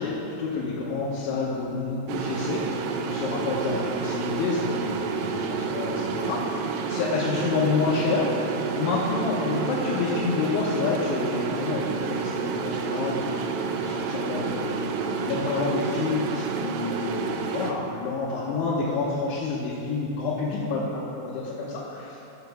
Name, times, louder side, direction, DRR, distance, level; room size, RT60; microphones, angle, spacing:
voice 1, 0.0-8.3 8.7-12.4 12.6-13.5 13.8-22.2, left 4 dB, 90° left, -6 dB, 3.6 m, -28 dB
sound 1, 2.1-17.7, right 5 dB, 80° right, 2.8 m, -29 dB
11.5 x 5.9 x 6.9 m, 2.8 s
omnidirectional pair, 5.3 m